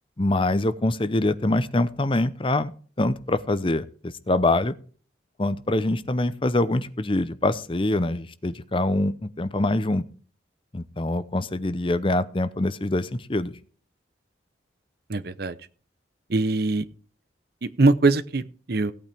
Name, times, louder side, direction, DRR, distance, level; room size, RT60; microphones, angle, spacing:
voice 1, 0.2-2.7 3.0-4.7 5.4-10.0 10.7-13.5, left 2 dB, 25° left, 13 dB, 0.7 m, -24 dB
voice 2, 15.1-15.7 16.3-16.9 17.6-18.9, right 3 dB, 55° right, 15 dB, 0.7 m, -22 dB
16.5 x 8.7 x 3.4 m, 0.43 s
head